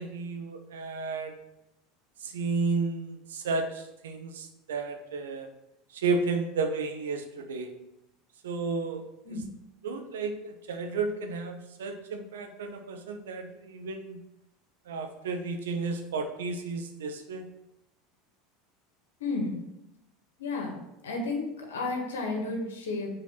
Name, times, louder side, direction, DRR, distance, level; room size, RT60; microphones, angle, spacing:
voice 1, 0.0-1.3 2.2-5.5 5.9-7.7 8.4-9.4 9.8-14.2 14.9-17.4, right 4 dB, 85° right, 6 dB, 0.9 m, -32 dB
voice 2, 19.2-19.6 20.4-20.8 21.0-23.1, left 3 dB, 90° left, 1 dB, 1.7 m, -32 dB
6.6 x 4.2 x 5.7 m, 0.90 s
hypercardioid pair, 90°, 0 cm